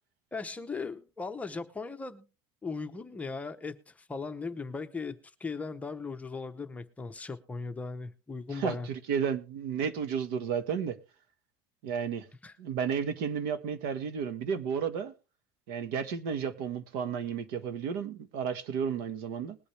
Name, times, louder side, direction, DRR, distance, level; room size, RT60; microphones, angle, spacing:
voice 1, 0.3-2.2 2.6-8.9 12.4-12.6, left 4 dB, 10° left, 0.8 m, -38 dB
voice 2, 8.5-11.0 11.8-12.3 12.6-15.1 15.7-19.6, right 7 dB, 75° right, 1.5 m, -32 dB
20.5 x 8.5 x 3.3 m
cardioid pair, 150°, 12 cm